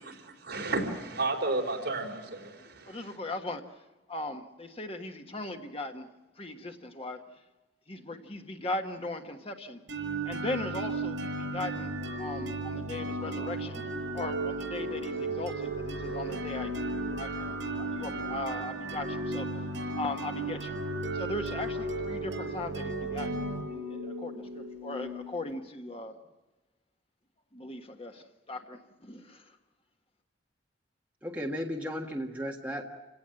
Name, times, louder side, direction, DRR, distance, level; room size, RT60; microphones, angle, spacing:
voice 1, 0.0-3.2, right 2 dB, 60° right, 4.3 m, -33 dB
voice 2, 2.9-3.6 4.1-6.1 6.4-7.2 7.9-9.8 10.3-13.8 14.1-16.8 17.2-19.5 20.0-20.8 21.1-26.1 27.5-29.4, left 2 dB, 30° left, 1.4 m, -38 dB
sound 1, 9.9-25.5, right 2 dB, 80° right, 6.1 m, -35 dB
voice 3, 31.2-32.8, equal, 10° right, 1.6 m, -34 dB
28.5 x 17.5 x 7.7 m
head